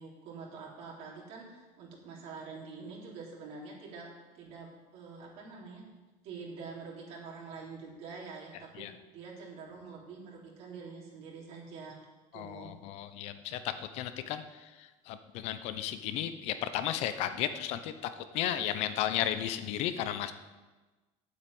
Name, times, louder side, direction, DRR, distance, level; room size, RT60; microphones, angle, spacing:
voice 1, 0.0-5.8 6.2-12.0 12.3-12.7, right 4 dB, 55° right, -3 dB, 3.6 m, -46 dB
voice 2, 12.3-20.3, left 11 dB, 55° left, 11 dB, 0.9 m, -34 dB
8.8 x 8.2 x 8.9 m, 1.2 s
cardioid pair, 155°, 13 cm